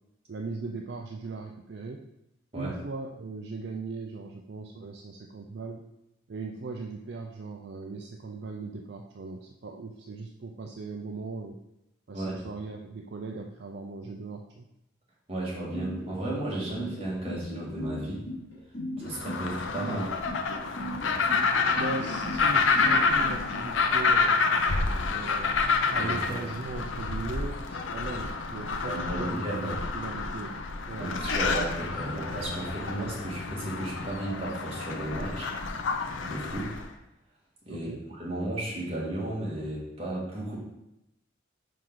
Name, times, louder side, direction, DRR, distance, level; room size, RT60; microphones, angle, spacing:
voice 1, 0.3-2.0 2.5-5.8 6.3-11.6 12.1-14.7 21.7-24.4 25.1-25.6 25.9-31.2 37.7-38.0, right 3 dB, 60° right, 2 dB, 0.4 m, -38 dB
voice 2, 12.1-12.5 15.3-18.3 19.0-20.1 25.9-26.4 28.9-29.8 31.0-35.5 36.2-36.8 37.7-40.6, right 1 dB, 30° right, -5 dB, 1.8 m, -34 dB
sound 1, 15.7-23.4, equal, 60° left, 2.4 m, -37 dB
sound 2, 19.1-36.9, left 4 dB, 80° left, 0.6 m, -28 dB
5.8 x 4.7 x 3.9 m, 0.86 s
head